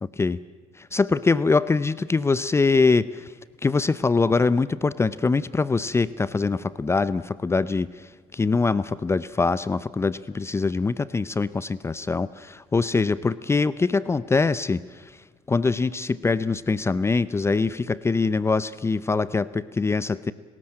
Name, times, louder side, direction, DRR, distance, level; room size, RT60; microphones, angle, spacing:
voice 1, 0.0-0.4 0.8-3.3 3.6-12.3 12.7-15.1 15.5-20.3, left 4 dB, 20° left, 18 dB, 0.6 m, -23 dB
30.0 x 13.5 x 8.8 m, 1.4 s
supercardioid pair, 80°, 14 cm